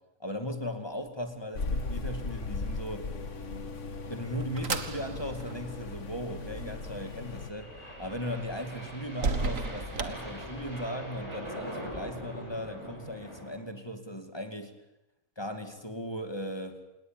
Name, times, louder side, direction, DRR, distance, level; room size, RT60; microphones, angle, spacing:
voice 1, 0.2-3.1 4.1-7.7 8.0-14.7 15.4-16.8, equal, 20° left, 6 dB, 2.4 m, -37 dB
sound 1, 1.5-7.5, left 3 dB, 65° left, 1.9 m, -37 dB
sound 2, 3.7-11.0, right 4 dB, 75° right, 2.0 m, -38 dB
sound 3, 4.4-13.6, equal, 20° right, 7.0 m, -44 dB
28.0 x 19.5 x 9.0 m, 0.93 s
omnidirectional pair, 1.4 m